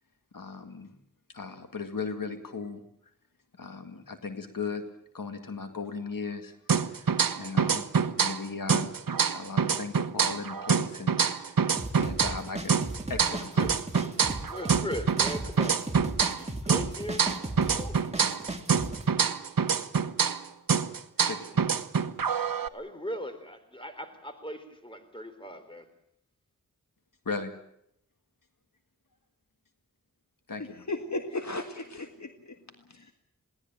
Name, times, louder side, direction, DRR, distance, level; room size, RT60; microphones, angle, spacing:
voice 1, 0.3-1.0 1.3-2.8 3.5-7.1 7.4-8.9 9.3-12.8 13.1-13.7 21.2-21.6 27.3-27.5 30.5-30.9, left 4 dB, 75° left, 7 dB, 2.1 m, -37 dB
sound 1, 6.7-8.4 8.7-12.4 12.7-16.4 16.7-20.4 20.7-22.7, right 6 dB, 80° right, 1.0 m, -26 dB
sound 2, 11.8-19.0, right 2 dB, 20° right, 2.4 m, -36 dB
voice 2, 13.6-14.2 14.5-18.4 22.7-25.9, equal, 15° left, 8 dB, 3.8 m, -40 dB
voice 3, 30.9-32.6 32.9-33.1, left 2 dB, 55° left, 6 dB, 1.8 m, -35 dB
21.5 x 18.0 x 8.8 m, 0.76 s
wide cardioid pair, 55°, 33 cm